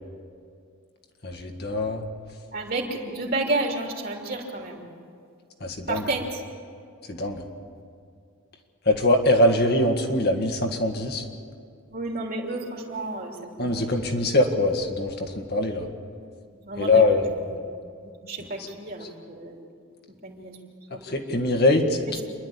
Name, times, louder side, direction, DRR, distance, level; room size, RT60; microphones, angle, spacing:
voice 1, 1.2-2.0 5.6-6.0 7.1-7.5 8.8-11.2 13.6-15.9 16.8-17.2 21.0-22.2, left 2 dB, 50° left, 3 dB, 1.8 m, -22 dB
voice 2, 2.5-4.8 5.9-6.4 11.9-14.1 16.5-17.6 18.0-19.6 20.2-20.6 20.9-21.1 22.1-22.2, right 2 dB, 45° right, 1 dB, 2.9 m, -31 dB
28.0 x 11.5 x 8.6 m, 2.4 s
head